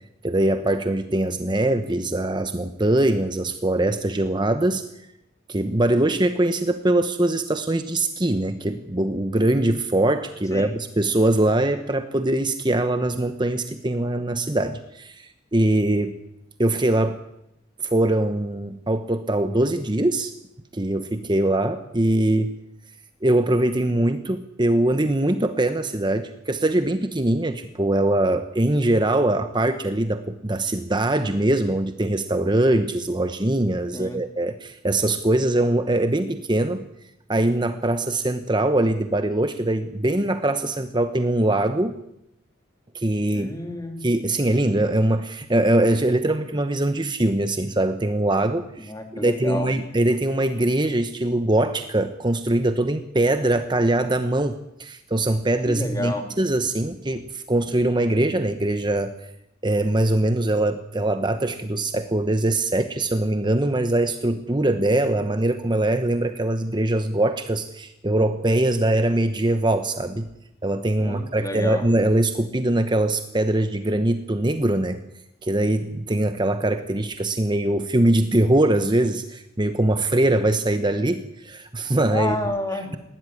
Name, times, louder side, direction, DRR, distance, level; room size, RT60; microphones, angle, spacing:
voice 1, 0.2-4.8 5.5-16.1 16.6-17.2 17.8-20.3 20.7-22.5 23.2-36.8 37.3-41.9 42.9-43.5 44.0-59.1 59.6-70.3 70.6-75.0 75.4-82.4, right 1 dB, 25° right, 8 dB, 1.0 m, -22 dB
voice 2, 43.3-44.1 48.8-49.7 55.7-56.2 71.0-71.8 82.1-83.0, left 1 dB, 20° left, 5 dB, 2.9 m, -30 dB
20.0 x 15.5 x 9.9 m, 0.84 s
head